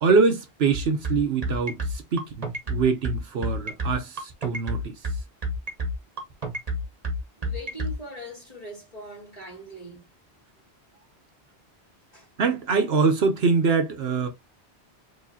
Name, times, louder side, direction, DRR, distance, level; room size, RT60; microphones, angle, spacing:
voice 1, 0.0-4.9 12.4-14.3, right 4 dB, 70° right, 1.0 m, -24 dB
sound 1, 0.7-7.9, equal, 35° right, 1.1 m, -29 dB
voice 2, 7.4-10.1 12.1-12.3, equal, 35° left, 2.1 m, -41 dB
4.9 x 3.1 x 2.7 m
omnidirectional pair, 1.1 m